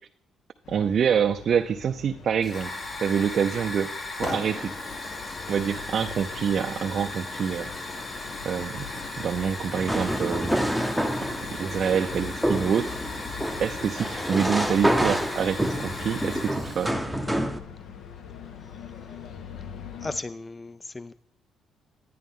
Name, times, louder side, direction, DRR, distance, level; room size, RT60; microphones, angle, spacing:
sound 1, 0.6-20.2, left 8 dB, 65° left, 0.7 m, -44 dB
voice 1, 0.7-2.7 3.0-4.7 5.5-7.7 8.4-8.9 9.2-10.6 11.2-11.3 11.6-12.9 13.6-16.9, right 7 dB, 50° right, 6 dB, 0.4 m, -26 dB
Hiss / Fire, 2.4-16.9, left 2 dB, 35° left, 1.2 m, -36 dB
sound 2, 9.8-17.6, equal, ahead, 0.7 m, -28 dB
voice 2, 20.0-21.1, left 3 dB, 20° left, 15 dB, 0.3 m, -35 dB
11.0 x 9.3 x 3.7 m, 0.71 s
cardioid pair, 110°, 0 cm